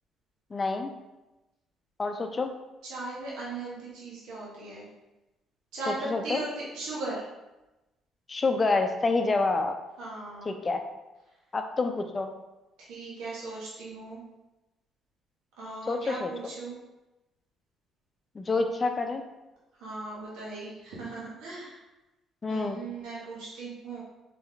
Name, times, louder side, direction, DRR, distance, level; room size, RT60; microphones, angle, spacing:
voice 1, 0.5-0.9 2.0-2.5 6.0-6.4 8.3-9.7 10.5-10.8 11.5-12.3 15.8-16.3 18.3-19.2 22.4-22.8, left 3 dB, 30° left, 6 dB, 0.5 m, -27 dB
voice 2, 2.9-4.9 5.7-5.9 6.2-7.2 10.0-10.5 12.9-14.2 15.6-16.8 19.8-21.8 22.5-24.0, right 3 dB, 90° right, -7 dB, 1.2 m, -38 dB
4.2 x 3.6 x 3.5 m, 1.0 s
cardioid pair, 95°, 0 cm